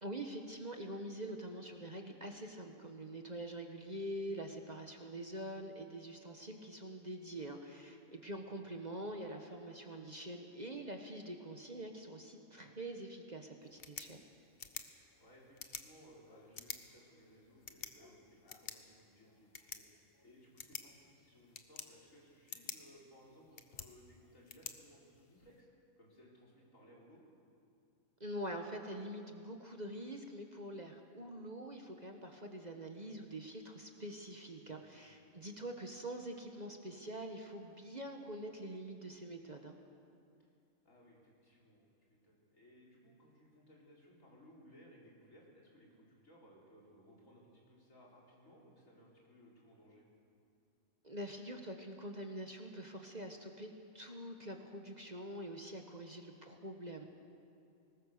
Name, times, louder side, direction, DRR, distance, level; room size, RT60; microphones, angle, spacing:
voice 1, 0.0-14.2 28.2-39.8 51.0-57.1, right 1 dB, 30° right, 3 dB, 1.3 m, -45 dB
sound 1, 13.6-25.6, left 6 dB, 45° left, 1.2 m, -51 dB
voice 2, 14.9-19.8 20.2-25.7 26.0-27.2 34.6-35.6 40.4-40.5 40.8-50.0, equal, 70° left, -4 dB, 4.8 m, -62 dB
22.5 x 19.5 x 6.7 m, 2.5 s
omnidirectional pair, 1.4 m